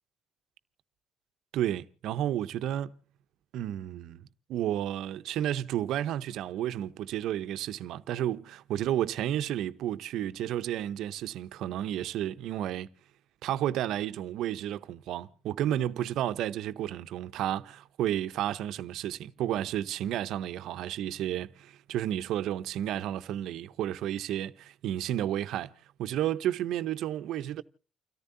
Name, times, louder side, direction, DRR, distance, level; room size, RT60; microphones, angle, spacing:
voice 1, 1.5-2.9 3.5-12.9 13.4-25.7 26.0-27.6, right 11 dB, 80° right, 0.7 m, -32 dB
29.5 x 14.0 x 2.6 m
cardioid pair, 100°, 0 cm